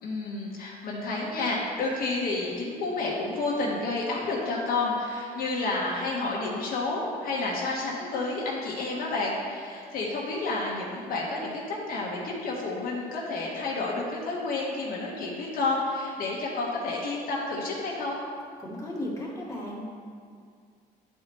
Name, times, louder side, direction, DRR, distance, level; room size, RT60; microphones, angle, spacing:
voice 1, 0.0-18.2, left 3 dB, 60° left, -4 dB, 1.3 m, -30 dB
voice 2, 18.6-19.8, left 1 dB, 20° left, -5 dB, 1.6 m, -35 dB
10.0 x 4.5 x 3.0 m, 2.2 s
cardioid pair, 110°, 17 cm